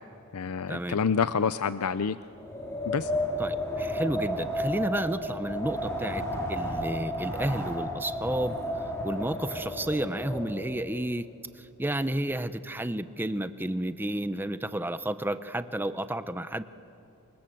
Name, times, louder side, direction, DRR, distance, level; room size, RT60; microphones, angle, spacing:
voice 1, 0.3-2.2 2.9-3.1, left 6 dB, 80° left, 13 dB, 0.6 m, -27 dB
Wind, 2.3-10.8, equal, 15° left, 3.8 m, -32 dB
voice 2, 3.4-6.2 6.5-8.6 9.0-11.3 11.6-16.6, right 1 dB, 10° right, 12 dB, 0.7 m, -31 dB
28.0 x 25.5 x 7.8 m, 2.7 s
head